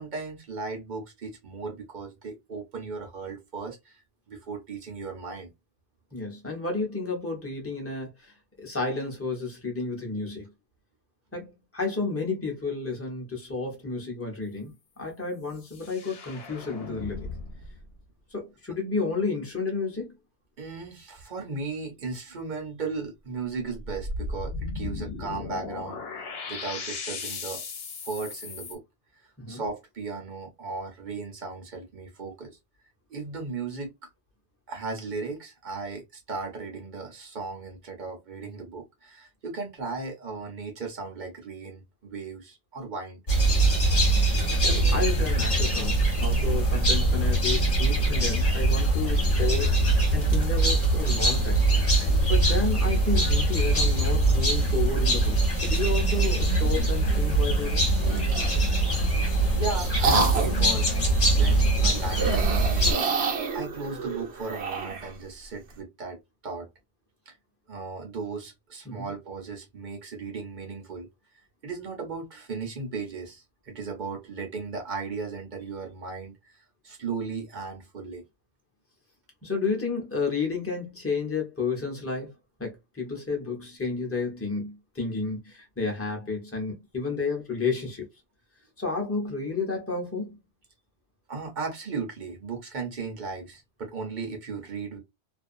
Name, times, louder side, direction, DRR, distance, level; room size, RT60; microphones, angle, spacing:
voice 1, 0.0-4.0 4.3-5.5 20.6-26.0 26.5-27.6 28.1-28.8 29.5-32.6 33.1-33.9 34.7-43.2 59.2-66.7 67.3-67.4 67.7-71.1 71.6-78.2 91.3-95.0, right 4 dB, 50° right, 0.8 m, -36 dB
voice 2, 6.1-10.5 11.3-17.3 18.3-20.2 29.4-29.6 44.9-49.7 50.1-51.6 52.3-57.9 68.8-69.1 79.4-82.3 82.6-88.1 88.8-90.4, left 4 dB, 15° left, 0.8 m, -31 dB
sound 1, 15.6-17.9 23.8-28.7, left 3 dB, 65° left, 0.9 m, -36 dB
sound 2, 43.3-62.9, right 2 dB, 40° left, 1.0 m, -23 dB
sound 3, 58.0-58.6 59.3-60.7 62.1-65.1, right 4 dB, 70° right, 1.0 m, -28 dB
2.5 x 2.3 x 2.5 m
omnidirectional pair, 1.1 m